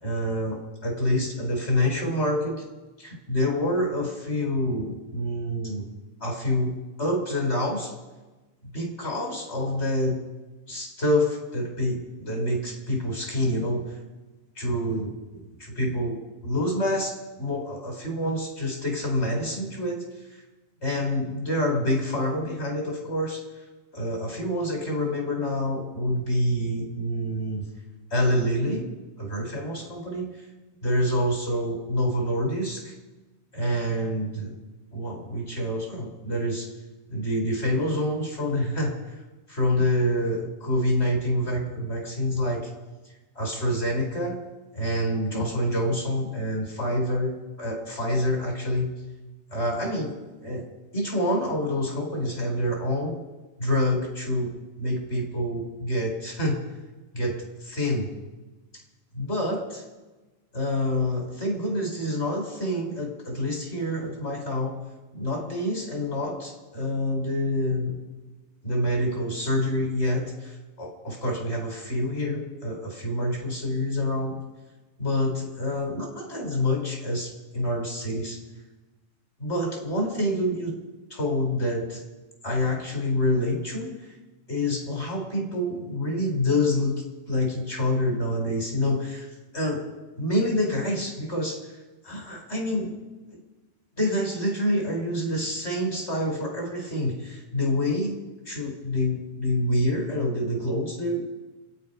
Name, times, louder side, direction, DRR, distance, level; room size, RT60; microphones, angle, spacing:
voice 1, 0.0-2.6 3.0-5.9 6.2-7.9 8.7-10.2 10.7-13.8 14.6-20.0 20.8-23.4 23.9-27.7 28.1-28.9 29.2-30.3 30.8-32.9 33.5-34.5 34.9-36.7 37.1-39.2 39.5-42.7 43.4-44.4 44.7-48.9 49.5-50.1 50.4-50.6 50.9-53.2 53.6-54.5 54.8-56.6 57.1-58.1 59.1-59.8 60.5-64.8 65.1-68.0 68.6-74.4 75.0-78.4 79.4-80.7 81.1-82.0 82.4-83.9 84.5-89.3 89.5-89.8 90.2-91.6 92.0-92.9 94.0-98.2 98.5-101.3, left 1 dB, 55° left, 1 dB, 4.1 m, -27 dB
26.5 x 9.6 x 5.4 m, 1.2 s
omnidirectional pair, 1.4 m